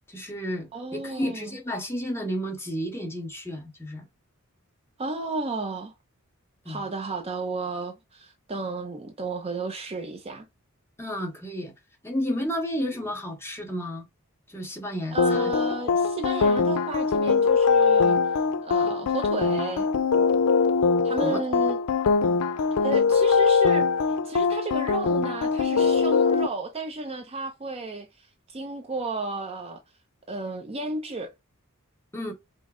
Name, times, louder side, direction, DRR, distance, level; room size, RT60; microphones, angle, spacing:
voice 1, 0.1-4.1 6.6-6.9 11.0-11.7 12.0-14.0 14.5-15.5 21.2-21.4 32.1-32.3, equal, 10° left, 1.0 m, -32 dB
voice 2, 0.7-1.6 5.0-5.9 6.7-10.5 15.1-18.2 18.6-19.9 21.0-21.8 22.8-23.9 24.2-29.8 30.3-31.3, right 3 dB, 25° right, 0.5 m, -33 dB
sound 1, 15.2-26.5, left 5 dB, 80° left, 0.5 m, -22 dB
5.3 x 2.0 x 3.6 m
head